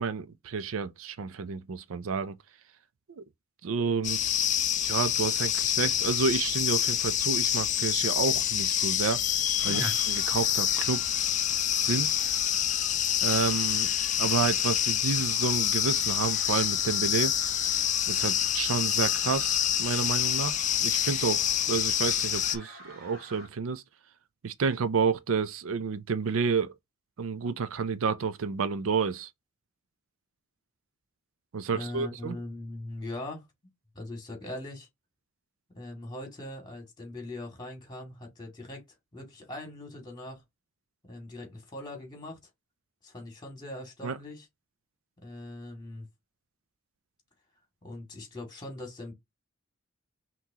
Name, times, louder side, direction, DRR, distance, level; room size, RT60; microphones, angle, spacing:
voice 1, 0.0-2.3 3.2-3.3 3.6-4.2 4.8-9.2 9.6-11.0 11.8-12.2 13.2-13.9 14.2-17.3 18.1-23.8 24.4-26.7 27.2-29.3 31.5-32.4 44.0-44.1, right 5 dB, 70° right, 0.4 m, -30 dB
sound 1, 4.0-22.6, left 10 dB, 35° left, 0.5 m, -27 dB
voice 2, 9.6-10.0 31.7-33.5 33.9-34.9 35.7-38.8 39.1-40.4 41.0-42.4 43.0-44.5 45.2-46.1 47.8-49.1, left 1 dB, 20° left, 2.1 m, -40 dB
sound 2, 9.6-23.5, right 1 dB, 45° right, 2.2 m, -49 dB
5.8 x 3.0 x 2.8 m
head